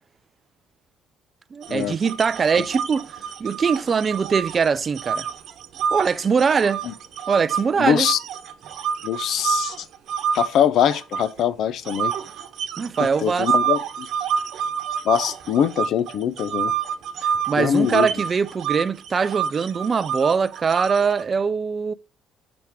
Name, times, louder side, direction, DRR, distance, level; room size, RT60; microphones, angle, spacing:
voice 1, 1.5-5.3 5.9-6.8 7.3-8.1 12.8-13.5 17.2-21.9, right 5 dB, 40° right, 0.3 m, -22 dB
sound 1, 1.6-7.6 8.0-11.4 11.8-21.2, right 7 dB, 65° right, 0.9 m, -28 dB
voice 2, 7.8-8.2 9.0-9.7 10.3-12.1 13.2-14.1 15.0-16.7 17.6-18.1, left 9 dB, 65° left, 0.5 m, -22 dB
6.0 x 3.5 x 4.6 m
supercardioid pair, 80°, 0 cm